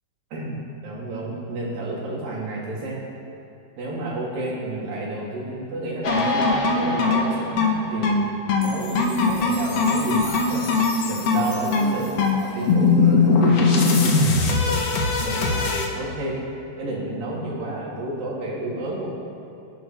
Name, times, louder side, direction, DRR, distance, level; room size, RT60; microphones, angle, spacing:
voice 1, 0.8-3.0 3.8-8.3 8.6-10.6 11.0-14.8 15.2-16.4 16.8-19.1, right 2 dB, 50° right, -5 dB, 4.6 m, -31 dB
sound 1, 6.0-15.9, left 3 dB, 85° left, 1.4 m, -20 dB
25.5 x 11.5 x 4.7 m, 2.8 s
omnidirectional pair, 5.6 m